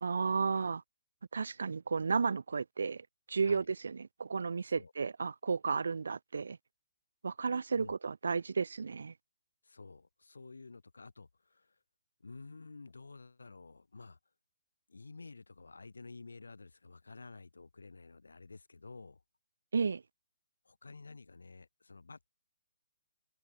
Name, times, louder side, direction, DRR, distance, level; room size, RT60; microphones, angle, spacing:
voice 1, 0.0-0.8 1.3-6.6 7.2-9.1 19.7-20.0, right 5 dB, 60° right, 0.4 m, -33 dB
voice 2, 9.6-11.8 12.2-14.2 14.9-19.2 20.6-22.3, left 3 dB, 70° left, 2.2 m, -51 dB
figure-of-eight pair, 130°, 0 cm